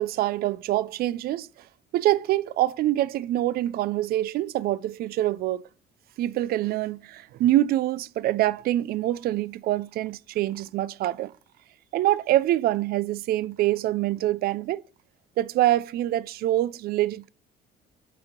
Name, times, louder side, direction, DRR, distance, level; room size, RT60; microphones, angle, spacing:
voice 1, 0.0-1.5 1.9-5.6 6.2-11.3 11.9-14.8 15.4-17.3, right 14 dB, 65° right, 0.4 m, -25 dB
8.4 x 2.9 x 5.1 m
cardioid pair, 110°, 17 cm